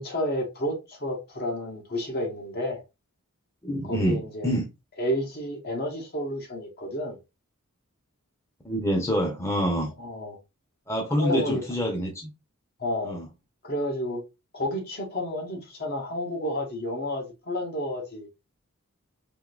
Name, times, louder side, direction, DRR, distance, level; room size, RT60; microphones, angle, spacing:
voice 1, 0.0-2.8 3.8-4.5 5.0-7.2 10.0-10.4 11.1-11.6 12.8-13.2 13.6-14.2 14.5-18.3, left 1 dB, 45° left, 1.0 m, -30 dB
voice 2, 3.6-4.7 8.6-9.9 10.9-12.3 13.0-13.3, equal, 10° left, 0.8 m, -26 dB
3.6 x 2.6 x 2.5 m
head